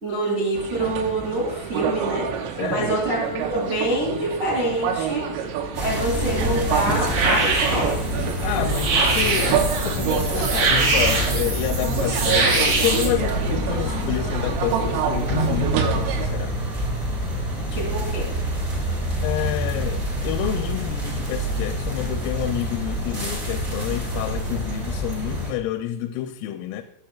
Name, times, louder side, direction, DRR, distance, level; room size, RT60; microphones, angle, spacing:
voice 1, 0.0-2.2 2.7-5.2 5.8-8.0 17.7-18.3, right 1 dB, 70° right, -2 dB, 0.6 m, -26 dB
sound 1, 0.5-16.3, right 7 dB, 85° right, 3.5 m, -28 dB
voice 2, 2.6-2.9 8.4-16.7 19.2-26.8, left 12 dB, 90° left, 7 dB, 3.2 m, -29 dB
sound 2, 5.7-25.5, equal, 25° right, 1.7 m, -27 dB
sound 3, 6.2-13.1, right 3 dB, 50° right, 3.4 m, -24 dB
18.0 x 7.2 x 2.2 m, 0.82 s
omnidirectional pair, 5.8 m